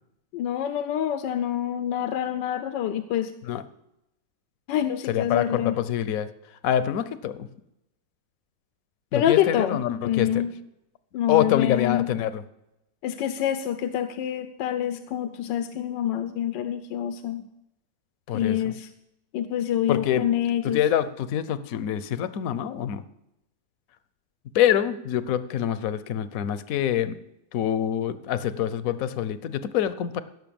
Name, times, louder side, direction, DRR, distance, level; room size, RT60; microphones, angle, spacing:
voice 1, 0.3-3.3 4.7-5.8 9.1-9.8 10.0-10.5 11.1-12.1 13.0-17.4 18.3-18.9 19.3-20.8, left 10 dB, 85° left, 9 dB, 1.4 m, -26 dB
voice 2, 5.1-6.3 6.6-7.4 9.1-10.4 11.3-12.4 18.3-18.7 19.9-20.3 20.6-23.0 24.5-27.2 27.5-30.2, left 10 dB, 60° left, 14 dB, 1.0 m, -25 dB
16.5 x 6.6 x 7.0 m, 0.86 s
omnidirectional pair, 1.9 m